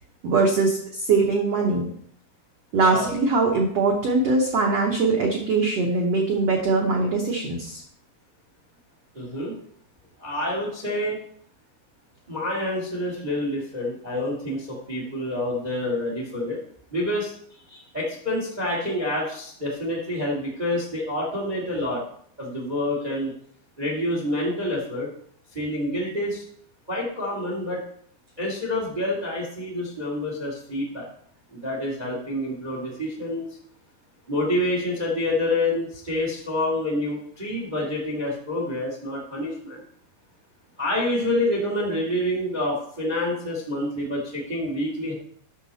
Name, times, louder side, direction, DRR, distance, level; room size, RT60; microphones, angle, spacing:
voice 1, 0.2-1.8 2.7-7.8, right 3 dB, 85° right, -1 dB, 1.3 m, -22 dB
voice 2, 9.1-9.5 10.2-11.2 12.3-16.6 16.9-22.0 22.4-23.3 23.8-25.1 25.5-26.4 26.9-27.8 28.4-31.1 31.5-33.5 34.3-39.8 40.8-45.1, left 1 dB, 25° right, -3 dB, 0.9 m, -27 dB
10.0 x 6.3 x 4.1 m, 0.63 s
omnidirectional pair, 4.5 m